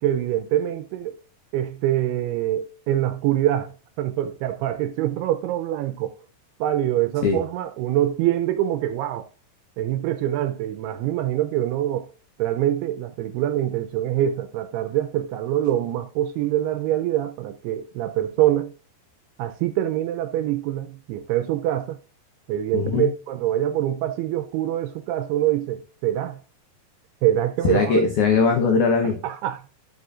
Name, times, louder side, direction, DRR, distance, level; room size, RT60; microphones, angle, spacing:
voice 1, 0.0-1.2 1.5-6.2 6.6-9.3 9.8-12.1 12.4-18.7 19.4-22.0 22.5-26.4 27.2-28.0 29.2-29.7, right 12 dB, 80° right, 2.4 m, -24 dB
voice 2, 22.7-23.1 27.6-29.2, left 5 dB, 90° left, 1.7 m, -20 dB
15.5 x 5.5 x 2.5 m
omnidirectional pair, 5.1 m